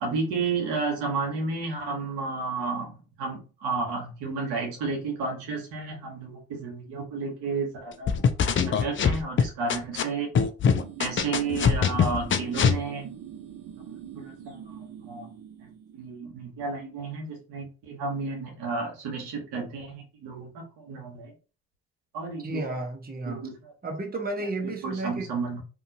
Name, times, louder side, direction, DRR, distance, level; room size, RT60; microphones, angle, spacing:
voice 1, 0.0-8.3 8.7-10.3 11.0-13.1 14.1-15.3 15.6-21.3 22.1-22.6 23.2-23.7 24.4-25.6, right 4 dB, 75° right, 1.0 m, -32 dB
sound 1, 8.1-10.0 10.3-12.8, left 6 dB, 30° left, 0.4 m, -22 dB
sound 2, 10.7-16.2, right 9 dB, 50° right, 0.7 m, -43 dB
voice 2, 22.4-23.4 23.8-25.3, right 2 dB, 20° right, 0.9 m, -32 dB
2.7 x 2.5 x 2.6 m
hypercardioid pair, 45°, 40 cm